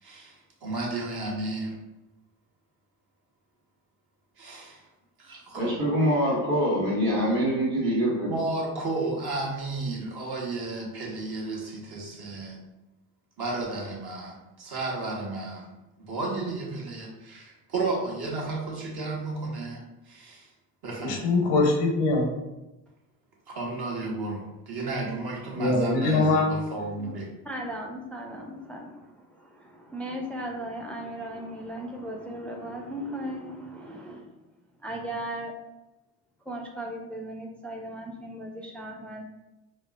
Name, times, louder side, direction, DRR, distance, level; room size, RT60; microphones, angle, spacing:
voice 1, 0.0-1.7 4.4-4.8 5.2-5.7 8.3-12.6 13.4-15.7 16.1-20.5 20.8-21.3 23.5-27.3, right 2 dB, 55° right, -2 dB, 1.2 m, -33 dB
voice 2, 5.3-8.3, equal, 80° right, -6 dB, 1.5 m, -25 dB
voice 3, 21.0-22.3 25.6-26.5, left 3 dB, 80° left, 2 dB, 0.8 m, -23 dB
voice 4, 27.5-34.3 34.8-35.6 36.5-39.2, right 1 dB, 5° left, 0 dB, 0.4 m, -37 dB
4.3 x 2.1 x 2.4 m, 0.99 s
hypercardioid pair, 55°, 47 cm